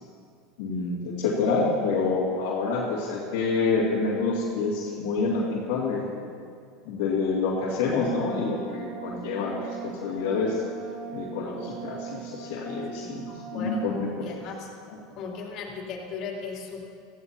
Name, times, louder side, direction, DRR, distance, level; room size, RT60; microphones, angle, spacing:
voice 1, 0.6-6.1 6.8-10.6 11.1-14.3 14.9-15.0, left 4 dB, 65° left, -7 dB, 2.5 m, -27 dB
Wind instrument woodwind instrument, 8.0-14.1, right 5 dB, 45° right, 2.2 m, -40 dB
voice 2, 13.0-13.9 14.2-14.7 15.2-16.8, left 5 dB, 50° left, -2 dB, 3.4 m, -37 dB
18.0 x 14.5 x 2.9 m, 2.3 s
hypercardioid pair, 95°, 0 cm